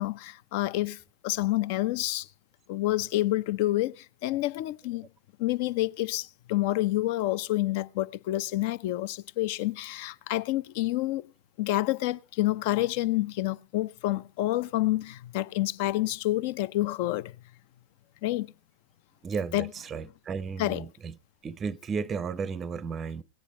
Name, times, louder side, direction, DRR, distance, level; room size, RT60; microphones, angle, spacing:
voice 1, 0.0-2.3 2.7-5.1 5.4-11.3 11.6-17.3 18.2-18.5 19.5-19.7 20.6-20.8, left 16 dB, 50° left, 0.6 m, -28 dB
voice 2, 19.2-21.1 21.4-23.2, right 5 dB, 20° right, 0.6 m, -34 dB
18.0 x 9.9 x 5.2 m
figure-of-eight pair, 90°, 0 cm